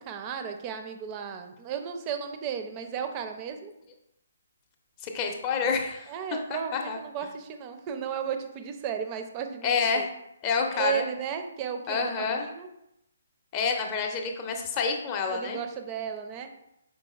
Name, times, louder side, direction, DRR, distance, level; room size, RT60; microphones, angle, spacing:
voice 1, 0.0-3.7 6.1-10.1 10.7-12.7 15.3-16.5, right 8 dB, 25° right, 6 dB, 0.5 m, -34 dB
voice 2, 5.0-6.1 6.7-7.0 9.6-10.1 10.4-11.0 11.9-12.4 13.5-15.6, left 5 dB, 25° left, 3 dB, 0.6 m, -28 dB
5.2 x 4.0 x 2.3 m, 0.83 s
figure-of-eight pair, 135°, 0 cm